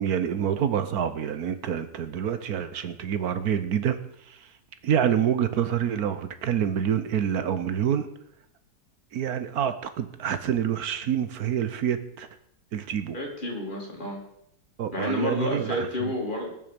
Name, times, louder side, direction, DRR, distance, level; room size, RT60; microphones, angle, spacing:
voice 1, 0.0-4.0 4.3-4.4 4.8-8.1 9.1-12.3 12.7-13.2 14.8-15.9, right 9 dB, 70° right, 12 dB, 1.4 m, -27 dB
voice 2, 13.1-14.2 14.9-16.5, left 1 dB, 30° left, -1 dB, 3.4 m, -30 dB
19.5 x 7.4 x 5.2 m, 0.73 s
omnidirectional pair, 1.7 m